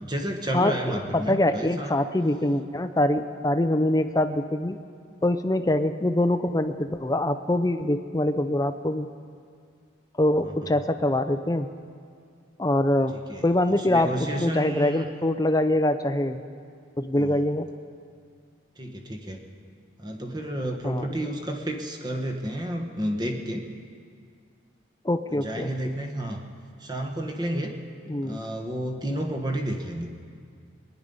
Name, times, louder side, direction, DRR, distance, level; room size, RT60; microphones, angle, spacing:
voice 1, 0.0-1.9 10.4-10.7 13.3-13.4 13.8-15.1 17.1-17.4 18.8-19.4 20.0-23.6 25.3-26.4 26.8-27.7 28.2-30.1, right 1 dB, 20° right, 3 dB, 1.1 m, -31 dB
voice 2, 0.5-4.8 5.2-9.1 10.2-11.7 12.6-13.1 13.4-14.1 14.4-16.4 17.0-17.7 20.8-21.1 25.0-25.7 28.1-28.4, left 1 dB, 20° left, 9 dB, 0.5 m, -24 dB
21.5 x 10.0 x 5.4 m, 2.2 s
head